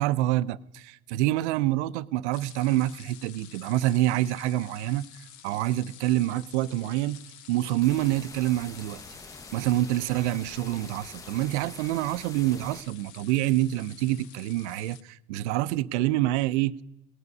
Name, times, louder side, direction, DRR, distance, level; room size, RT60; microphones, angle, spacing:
voice 1, 0.0-5.0 5.4-7.2 7.5-9.0 9.5-16.8, right 15 dB, 85° right, 0.5 m, -26 dB
sound 1, 2.3-15.0, left 10 dB, 55° left, 0.9 m, -50 dB
sound 2, 7.8-12.8, left 2 dB, 10° left, 0.6 m, -46 dB
18.0 x 9.8 x 5.3 m
supercardioid pair, 100°, 33 cm